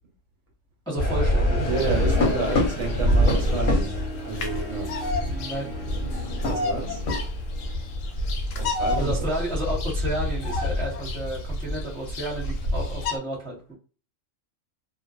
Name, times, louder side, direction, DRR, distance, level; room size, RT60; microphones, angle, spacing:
voice 1, 0.9-1.7 2.4-2.8 5.3-5.7 9.0-13.7, right 1 dB, 5° left, 0.7 m, -32 dB
Harp, 0.9-9.5, right 4 dB, 25° right, 0.9 m, -44 dB
sound 1, 1.0-13.1, left 1 dB, 50° left, 0.7 m, -26 dB
Bird vocalization bird call bird song, 1.6-13.2, left 4 dB, 85° left, 1.0 m, -35 dB
voice 2, 1.6-4.0 4.2-5.0 6.4-7.0 8.6-9.3, right 4 dB, 65° right, 1.1 m, -30 dB
2.4 x 2.3 x 2.3 m
omnidirectional pair, 1.3 m